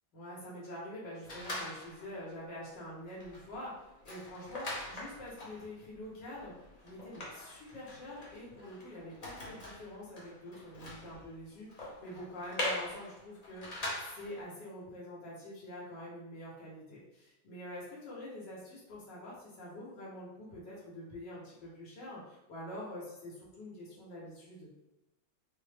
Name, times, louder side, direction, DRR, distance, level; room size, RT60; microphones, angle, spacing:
voice 1, 0.1-24.7, left 1 dB, 85° left, -6 dB, 1.7 m, -46 dB
sound 1, 1.2-2.2 2.6-2.8 3.1-14.4, left 1 dB, 55° left, 0.4 m, -43 dB
4.3 x 2.1 x 3.3 m, 0.96 s
omnidirectional pair, 1.9 m